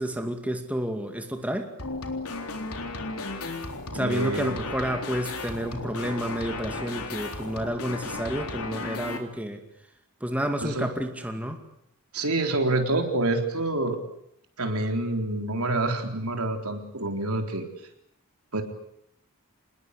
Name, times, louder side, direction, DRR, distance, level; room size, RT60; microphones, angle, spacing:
voice 1, 0.0-1.7 3.9-9.6 10.2-11.6, equal, 5° right, 4 dB, 2.4 m, -30 dB
sound 1, 1.8-9.2, left 3 dB, 75° left, 3.7 m, -35 dB
voice 2, 3.9-4.6 10.6-10.9 12.1-14.0 14.6-17.7 18.5-18.6, right 2 dB, 70° right, 4 dB, 3.9 m, -27 dB
27.5 x 20.5 x 8.3 m, 0.75 s
head